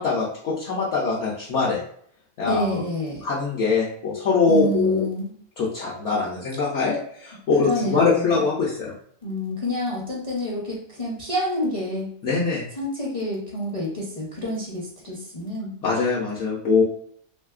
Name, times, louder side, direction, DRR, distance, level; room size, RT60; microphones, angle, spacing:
voice 1, 0.0-1.8 2.4-2.7 3.2-5.1 5.6-8.9 12.2-12.7 15.8-16.8, left 4 dB, 65° left, -4 dB, 0.8 m, -23 dB
voice 2, 2.5-3.2 4.5-5.3 7.6-8.4 9.2-12.1 12.8-15.7, left 1 dB, 40° left, -5 dB, 0.5 m, -28 dB
3.0 x 2.7 x 2.3 m, 0.64 s
omnidirectional pair, 1.5 m